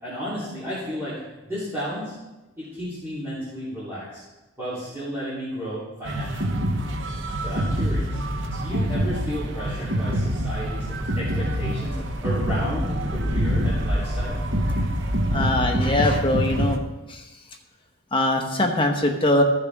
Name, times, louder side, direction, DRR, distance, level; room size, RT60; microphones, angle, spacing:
voice 1, 0.0-2.1 2.6-4.2 4.6-6.5 7.4-8.2 8.5-14.4, equal, 10° right, -13 dB, 3.3 m, -33 dB
sound 1, 6.0-16.8, equal, 60° right, 1.0 m, -25 dB
voice 2, 15.3-16.8 17.1-17.2 18.1-19.4, left 1 dB, 25° left, 3 dB, 1.0 m, -22 dB
15.5 x 6.8 x 3.6 m, 1.1 s
head